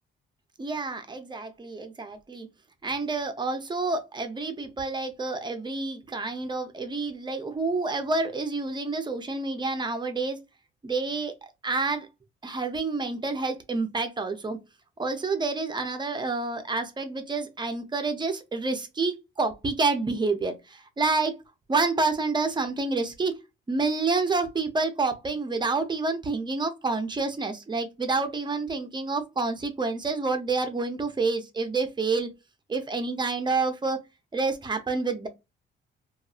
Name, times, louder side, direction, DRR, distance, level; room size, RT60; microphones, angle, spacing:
voice 1, 0.6-2.5 2.8-10.4 10.8-12.1 12.4-14.6 15.0-21.3 21.7-23.3 23.7-32.3 32.7-34.0 34.3-35.3, right 3 dB, 20° right, 0.6 m, -28 dB
2.6 x 2.4 x 2.4 m
cardioid pair, 90°, 20 cm